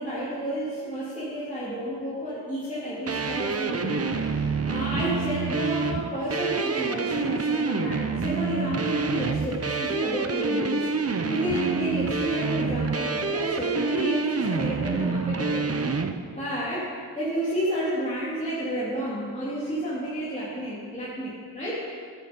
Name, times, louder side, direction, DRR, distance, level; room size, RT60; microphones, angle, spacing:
voice 1, 0.0-15.7 16.3-16.9 17.1-21.8, right 1 dB, 15° left, -10 dB, 2.7 m, -31 dB
sound 1, 3.1-16.1, right 4 dB, 35° right, 0.7 m, -27 dB
13.5 x 9.2 x 5.3 m, 2.1 s
wide cardioid pair, 105°, 45 cm